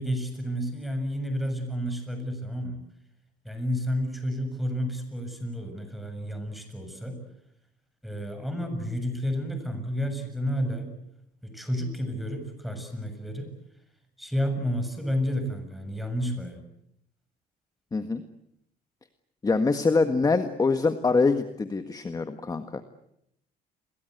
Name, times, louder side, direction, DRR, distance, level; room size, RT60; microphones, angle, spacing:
voice 1, 0.0-2.8 3.5-7.2 8.0-10.9 11.4-13.5 14.2-16.6, equal, ahead, 7 dB, 7.2 m, -31 dB
voice 2, 17.9-18.2 19.4-22.8, left 4 dB, 20° left, 8 dB, 1.6 m, -24 dB
29.5 x 23.0 x 8.0 m, 0.76 s
cardioid pair, 110°, 17 cm